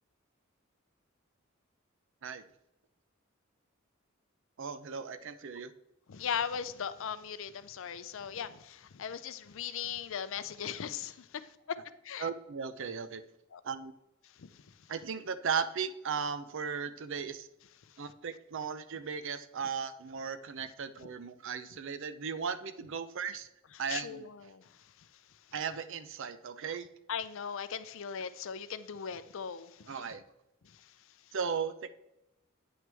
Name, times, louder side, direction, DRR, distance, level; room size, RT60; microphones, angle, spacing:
voice 1, 4.6-5.7 12.2-13.2 13.6-13.9 14.9-17.5 18.0-23.5 23.8-24.3 25.5-26.9 29.9-30.2 31.3-31.9, right 6 dB, 65° right, 0.6 m, -36 dB
voice 2, 6.1-11.6 12.0-12.3 13.5-13.6 14.4-14.6 23.9-25.1 27.1-30.0 30.6-30.9, left 7 dB, 65° left, 0.5 m, -39 dB
9.0 x 6.0 x 3.4 m
head